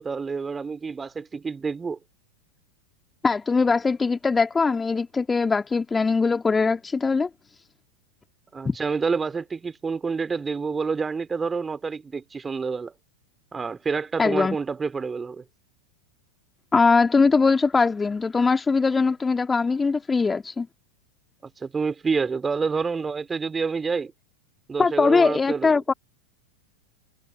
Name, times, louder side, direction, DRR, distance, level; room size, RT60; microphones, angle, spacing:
voice 1, 0.0-2.0 8.5-12.9 13.5-15.4 21.4-24.1 24.7-25.8, right 5 dB, 15° right, 3.3 m, -28 dB
voice 2, 3.2-7.3 8.6-8.7 14.2-14.6 16.7-20.7 24.8-25.9, left 4 dB, 15° left, 2.2 m, -21 dB
figure-of-eight pair, 90°, 0 cm